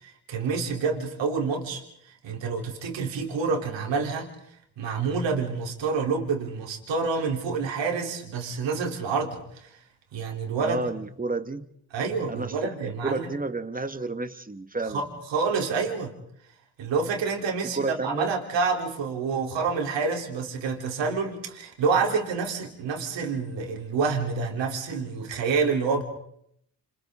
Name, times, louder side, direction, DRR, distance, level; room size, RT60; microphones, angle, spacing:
voice 1, 0.0-4.3 4.8-9.8 10.1-10.9 11.9-13.3 14.9-16.1 16.8-26.0, right 5 dB, 80° right, 1 dB, 3.7 m, -28 dB
voice 2, 10.6-11.6 12.3-15.0 17.7-18.3, right 3 dB, 20° right, 8 dB, 1.8 m, -31 dB
29.5 x 25.5 x 3.8 m, 0.72 s
supercardioid pair, 50°, 44 cm